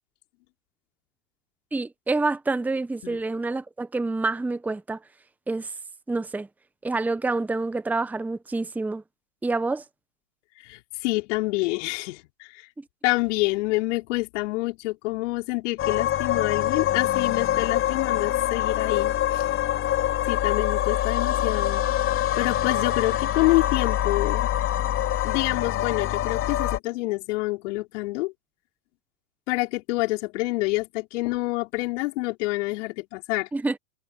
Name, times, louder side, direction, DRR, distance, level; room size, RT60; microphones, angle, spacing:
voice 1, 1.7-5.0 5.5-5.7 6.1-6.5 6.8-9.0 9.4-9.8 33.5-33.8, right 3 dB, 5° right, 1.0 m, -27 dB
voice 2, 10.6-12.7 13.0-19.5 20.3-21.9 22.4-24.5 25.2-28.3 29.5-33.5, left 22 dB, 50° left, 5.5 m, -27 dB
sound 1, 15.8-26.8, left 12 dB, 30° left, 3.2 m, -25 dB
hypercardioid pair, 115°, 44 cm